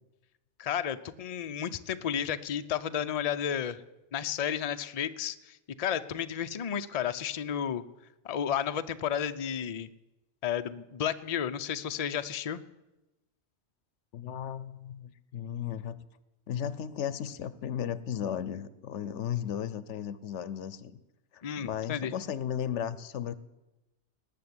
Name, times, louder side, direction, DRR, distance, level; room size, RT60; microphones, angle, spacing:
voice 1, 0.6-3.8 4.1-7.8 8.2-9.9 10.4-12.6 21.4-22.1, left 9 dB, 45° left, 10 dB, 0.6 m, -32 dB
voice 2, 14.1-16.0 16.5-21.0 21.3-23.4, left 9 dB, 90° left, 17 dB, 1.1 m, -35 dB
19.0 x 6.7 x 9.7 m, 1.0 s
omnidirectional pair, 1.2 m